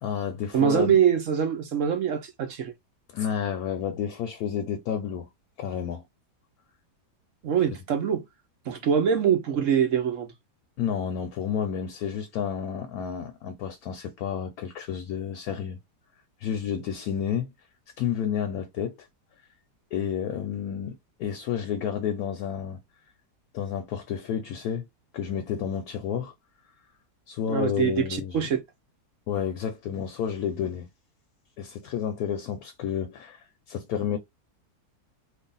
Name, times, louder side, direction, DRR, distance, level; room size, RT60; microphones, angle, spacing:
voice 1, 0.0-1.0 3.1-5.3 5.6-6.0 10.8-15.8 16.4-17.5 18.0-19.0 19.9-20.9 21.2-22.8 23.5-24.8 25.1-26.3 27.3-28.5 29.3-30.9 31.6-33.4 33.7-34.2, left 8 dB, 70° left, 1.1 m, -30 dB
voice 2, 0.5-2.7 7.4-8.2 8.7-10.3 27.5-28.6, right 8 dB, 60° right, 0.9 m, -24 dB
3.3 x 2.4 x 3.8 m
omnidirectional pair, 1.8 m